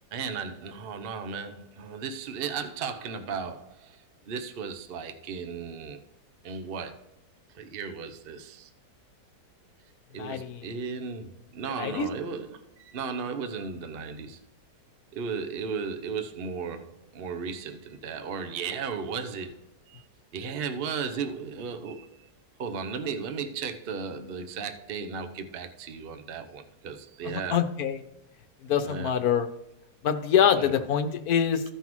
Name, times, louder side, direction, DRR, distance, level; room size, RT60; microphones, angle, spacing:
voice 1, 0.1-6.0 6.4-7.0 7.5-8.7 10.1-14.4 15.1-19.6 19.9-20.0 20.3-22.3 22.6-27.6 28.8-29.1 30.6-30.7, right 5 dB, 50° right, 7 dB, 0.7 m, -35 dB
voice 2, 10.2-10.7 11.8-12.1 27.2-28.0 28.7-29.5 30.0-31.6, left 8 dB, 65° left, 9 dB, 1.2 m, -25 dB
15.0 x 5.6 x 3.1 m, 0.86 s
omnidirectional pair, 1.9 m